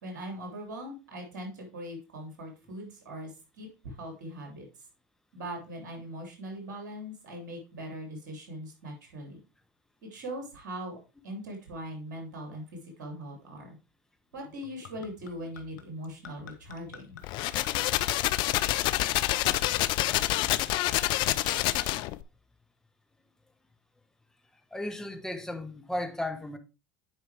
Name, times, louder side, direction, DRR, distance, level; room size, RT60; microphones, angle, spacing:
voice 1, 0.0-4.6 5.3-9.4 10.0-11.0 11.2-13.8 14.3-17.2, equal, 70° right, 3.1 m, -41 dB
Gurgling / Chink clink / Liquid, 14.4-20.6 21.3-21.7, left 7 dB, 80° left, 1.0 m, -49 dB
sound 1, 17.2-22.2, left 16 dB, 50° left, 0.4 m, -27 dB
voice 2, 24.7-26.6, left 1 dB, 5° left, 1.1 m, -35 dB
9.7 x 4.6 x 3.4 m
hypercardioid pair, 85°, 10 cm